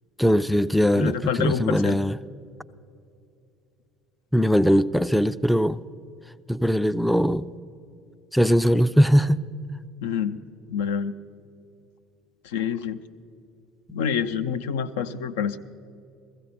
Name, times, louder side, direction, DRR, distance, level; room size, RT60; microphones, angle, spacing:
voice 1, 0.2-2.1 4.3-5.8 6.5-7.5 8.3-9.4, equal, ahead, 15 dB, 0.3 m, -20 dB
voice 2, 1.0-2.0 10.0-10.4 10.7-11.1 12.4-13.0 13.9-15.6, left 7 dB, 75° left, 11 dB, 0.4 m, -27 dB
15.5 x 15.5 x 4.2 m, 2.6 s
hypercardioid pair, 65°, 0 cm